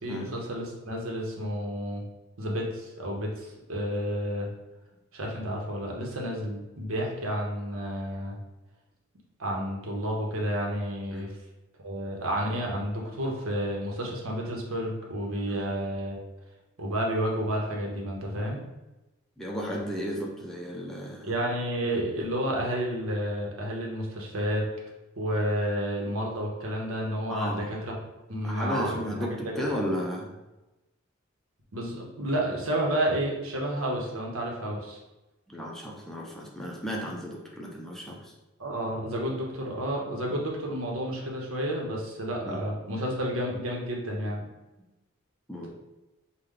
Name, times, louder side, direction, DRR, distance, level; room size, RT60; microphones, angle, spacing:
voice 1, 0.0-2.0 2.4-4.5 5.1-8.4 9.4-11.3 11.8-16.2 16.8-18.6 21.2-24.7 25.2-27.9 28.3-29.8 31.7-35.0 38.6-44.4 45.6-45.7, equal, 75° right, -1 dB, 1.0 m, -31 dB
voice 2, 19.4-21.3 27.3-27.7 28.4-30.4 35.5-38.3 42.4-42.6 45.5-45.7, equal, ahead, -3 dB, 0.5 m, -34 dB
5.0 x 2.2 x 3.7 m, 1.0 s
head